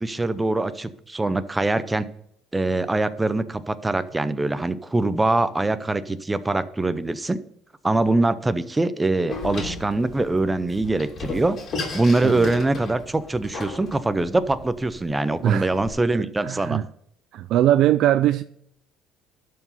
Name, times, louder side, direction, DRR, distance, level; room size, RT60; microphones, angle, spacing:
voice 1, 0.0-2.1 2.5-7.4 7.8-11.6 11.9-16.8, right 2 dB, 10° right, 0.6 m, -23 dB
Door, 9.3-15.9, left 3 dB, 40° left, 2.8 m, -35 dB
voice 2, 16.1-16.9 17.3-18.4, right 12 dB, 60° right, 0.3 m, -21 dB
12.5 x 4.8 x 5.5 m
cardioid pair, 130°, 0 cm